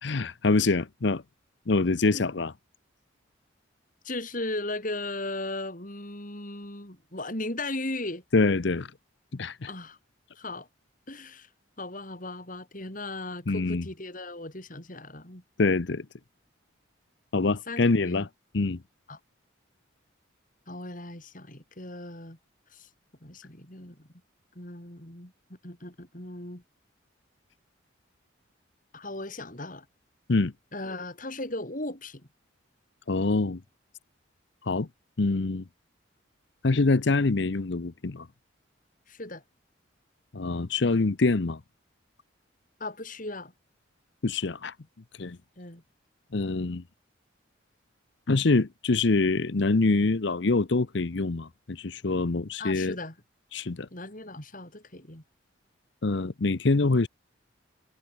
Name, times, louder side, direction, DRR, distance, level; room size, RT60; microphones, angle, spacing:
voice 1, 0.0-1.2 1.7-2.5 8.3-8.9 9.3-9.7 13.5-13.9 15.6-16.1 17.3-18.3 18.5-18.8 30.3-30.5 33.1-33.6 34.7-34.9 35.2-35.6 36.6-38.3 40.3-41.6 44.2-44.7 45.2-45.4 46.3-46.8 48.3-52.9 53.5-53.9 56.0-57.1, left 3 dB, 60° left, 0.7 m, -25 dB
voice 2, 4.0-8.2 9.6-10.0 10.4-10.7 11.1-11.5 11.8-15.4 17.7-18.3 19.1-19.2 20.7-22.4 22.7-22.9 23.2-24.1 24.6-26.6 28.9-29.9 30.7-32.3 39.1-39.4 42.8-43.5 45.6-45.8 52.6-53.1 53.9-55.2, left 2 dB, 40° left, 4.1 m, -37 dB
head